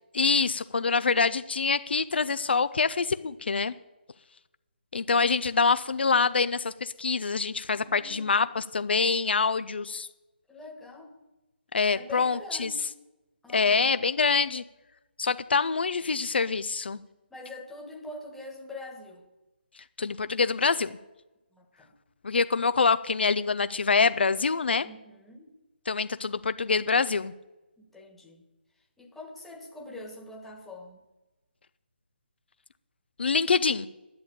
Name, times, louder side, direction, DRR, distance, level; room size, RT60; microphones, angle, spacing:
voice 1, 0.1-3.7 4.9-10.1 11.7-12.7 13.5-14.6 15.2-17.0 20.0-20.9 22.2-24.9 25.9-27.3 33.2-33.9, left 5 dB, 65° left, 13 dB, 0.5 m, -25 dB
voice 2, 7.7-8.3 10.5-11.1 11.9-12.9 13.4-13.9 17.3-19.2 21.5-21.9 24.8-25.5 27.8-28.4 29.0-31.0, left 2 dB, 5° left, 0 dB, 1.5 m, -44 dB
11.0 x 7.2 x 8.6 m, 1.0 s
figure-of-eight pair, 150°, 6 cm